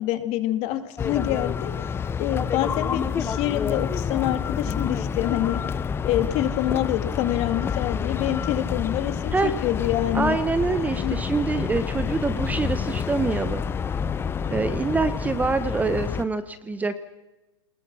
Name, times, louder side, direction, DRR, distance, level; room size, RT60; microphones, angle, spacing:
voice 1, 0.0-1.7 2.2-5.6 6.0-10.4 11.0-11.2, left 13 dB, 40° left, 10 dB, 2.2 m, -26 dB
sound 1, 1.0-16.2, left 6 dB, 15° left, 0.7 m, -28 dB
voice 2, 10.1-13.6 14.5-17.0, right 4 dB, 10° right, 12 dB, 0.9 m, -25 dB
26.5 x 20.5 x 6.2 m, 1.0 s
hypercardioid pair, 130°, 16 cm